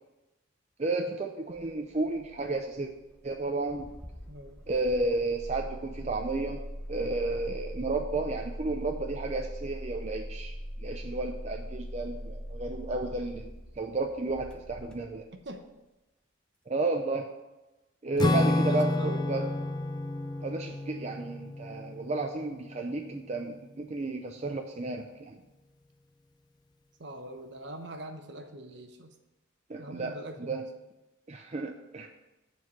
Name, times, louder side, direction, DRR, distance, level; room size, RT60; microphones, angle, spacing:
voice 1, 0.8-2.9 3.2-3.9 4.7-6.6 6.9-10.5 10.8-13.5 13.8-15.3 16.7-17.3 18.0-19.5 20.4-25.4 29.7-30.6 31.3-32.1, right 2 dB, 35° right, 3 dB, 0.5 m, -32 dB
Engine starting, 1.5-15.6, equal, 5° left, 0.8 m, -42 dB
voice 2, 4.3-4.6 11.1-11.2 15.4-15.6 18.7-19.3 27.0-29.1 29.8-30.6, right 1 dB, 60° right, 5 dB, 1.0 m, -43 dB
Acoustic guitar / Strum, 18.2-23.0, left 2 dB, 20° left, 0.4 m, -30 dB
8.3 x 4.7 x 7.4 m, 1.0 s
head